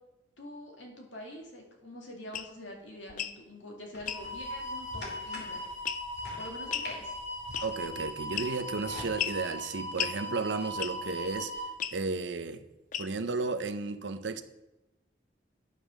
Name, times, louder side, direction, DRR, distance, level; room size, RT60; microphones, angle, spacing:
voice 1, 0.4-5.6 6.4-7.1, left 1 dB, 90° left, 0 dB, 2.4 m, -45 dB
sound 1, 2.3-2.5 3.1-3.4 4.1-4.2 5.9-6.2 6.7-6.9 7.5-7.9 8.4-8.7 9.2-9.4 10.0-10.2 10.8-11.1 11.8-12.0 12.9-13.3, left 10 dB, 40° left, 0.4 m, -34 dB
sound 2, 3.9-9.1, left 1 dB, 65° left, 3.2 m, -47 dB
sound 3, 4.1-11.7, equal, 20° left, 2.1 m, -39 dB
voice 2, 7.6-11.5 11.9-12.6 13.0-14.4, right 4 dB, 75° right, 11 dB, 0.7 m, -33 dB
10.5 x 5.0 x 6.4 m, 0.98 s
head